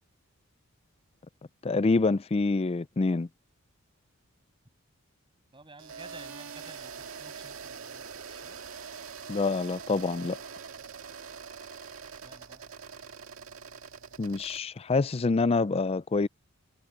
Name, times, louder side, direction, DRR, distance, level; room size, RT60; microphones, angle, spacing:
voice 1, 1.6-3.3 9.3-10.4 14.2-16.3, left 3 dB, 30° left, 0.4 m, -26 dB
voice 2, 5.5-8.6 12.1-12.6, right 3 dB, 25° right, 7.2 m, -52 dB
sound 1, 5.8-14.6, right 6 dB, 80° right, 1.9 m, -44 dB
head